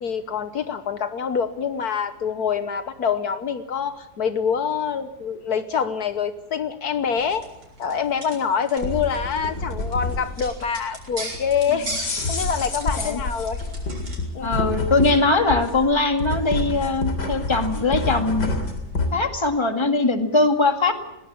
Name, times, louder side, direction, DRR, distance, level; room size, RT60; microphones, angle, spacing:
voice 1, 0.0-7.5 7.8-11.9 12.3-13.6 14.3-14.5, left 7 dB, 70° left, 11 dB, 1.5 m, -25 dB
sound 1, 7.1-14.2, right 2 dB, 75° right, 5.7 m, -39 dB
sound 2, 8.8-19.1, left 2 dB, 90° left, 3.8 m, -28 dB
voice 2, 14.4-18.5 19.1-20.9, left 3 dB, 15° left, 6 dB, 1.8 m, -21 dB
21.0 x 18.5 x 8.6 m, 0.87 s
omnidirectional pair, 1.8 m